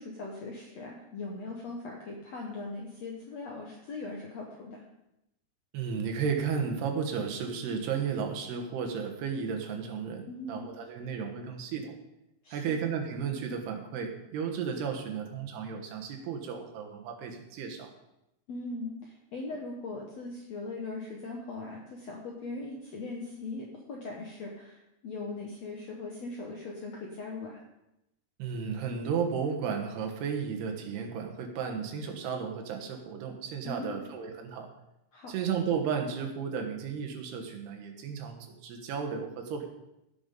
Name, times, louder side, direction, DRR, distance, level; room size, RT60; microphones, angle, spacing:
voice 1, 0.0-4.8 10.3-10.6 12.4-12.7 18.5-27.6 33.6-34.1 35.1-35.3, left 3 dB, 65° left, -1 dB, 1.7 m, -40 dB
voice 2, 5.7-12.0 12.5-17.9 28.4-34.7 35.3-39.7, right 6 dB, 75° right, 3 dB, 3.3 m, -33 dB
16.5 x 6.1 x 5.3 m, 0.87 s
omnidirectional pair, 4.8 m